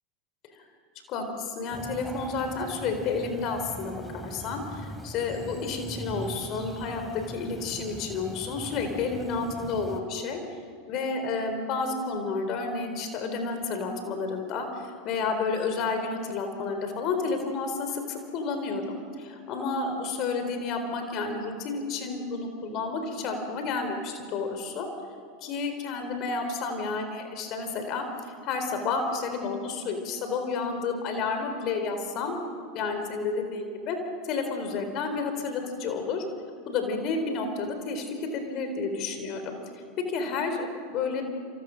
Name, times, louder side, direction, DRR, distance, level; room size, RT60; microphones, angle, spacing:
voice 1, 1.1-10.4 10.9-24.9 25.4-28.0 28.4-32.4 32.7-34.0 34.3-36.2 36.7-39.6 40.0-41.2, left 4 dB, 50° left, 6 dB, 4.1 m, -31 dB
sound 1, 1.7-10.0, equal, 5° left, 3.5 m, -41 dB
28.0 x 27.5 x 6.5 m, 2.2 s
hypercardioid pair, 85°, 0 cm